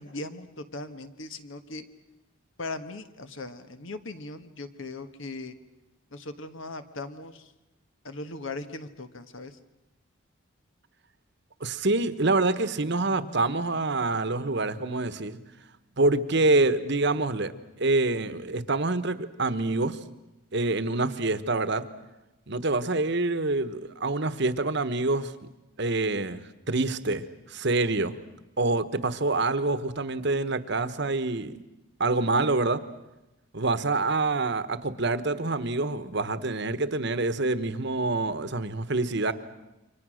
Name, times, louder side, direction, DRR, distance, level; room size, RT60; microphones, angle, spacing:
voice 1, 0.0-1.8 2.6-5.5 6.1-7.5 8.0-9.6, left 2 dB, 65° left, 9 dB, 1.5 m, -39 dB
voice 2, 11.6-15.4 16.0-17.5 17.8-20.0 20.5-21.8 22.5-25.3 25.8-28.1 28.6-31.6 32.0-32.8 33.5-39.3, right 2 dB, 55° right, 12 dB, 1.2 m, -26 dB
29.0 x 24.5 x 6.4 m, 0.99 s
head